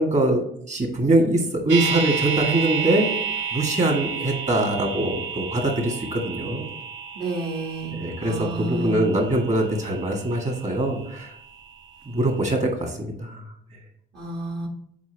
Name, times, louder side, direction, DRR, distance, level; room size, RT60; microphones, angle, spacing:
voice 1, 0.0-3.1 3.5-6.6 7.9-11.3 12.0-13.4, right 1 dB, 35° right, 1 dB, 1.8 m, -23 dB
sound 1, 1.7-11.7 12.0-12.1, right 7 dB, 75° right, 0.9 m, -31 dB
voice 2, 7.1-9.0 14.1-14.7, right 1 dB, 55° right, -3 dB, 1.4 m, -30 dB
7.1 x 4.7 x 3.4 m, 0.69 s
cardioid pair, 90°, 20 cm